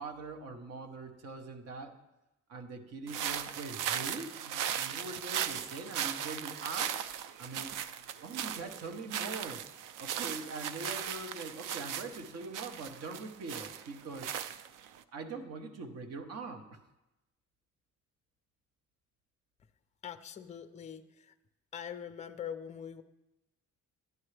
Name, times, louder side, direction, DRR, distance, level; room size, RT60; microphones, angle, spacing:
voice 1, 0.0-2.0 2.5-7.0 7.4-7.7 8.2-9.6 10.0-14.4 15.1-16.8, right 3 dB, 55° right, 7 dB, 1.0 m, -43 dB
sound 1, 3.1-15.0, right 9 dB, 85° right, 0.5 m, -38 dB
voice 2, 20.0-21.3 21.7-23.0, left 8 dB, 25° left, 9 dB, 0.4 m, -43 dB
11.0 x 10.5 x 3.3 m, 0.96 s
cardioid pair, 170°, 31 cm